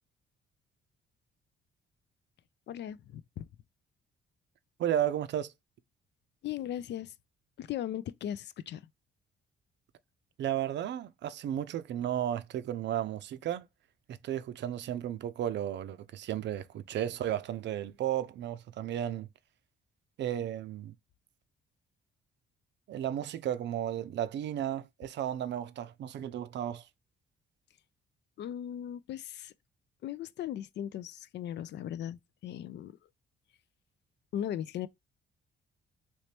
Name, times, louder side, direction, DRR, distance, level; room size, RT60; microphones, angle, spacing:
voice 1, 2.7-3.5 6.4-7.1 7.6-8.8 28.4-29.5 30.0-33.0 34.3-34.9, left 11 dB, 60° left, 0.4 m, -38 dB
voice 2, 4.8-5.5 10.4-13.7 14.1-19.3 20.2-20.9 22.9-26.9, right 11 dB, 65° right, 0.5 m, -34 dB
3.0 x 2.9 x 3.2 m
cardioid pair, 90°, 20 cm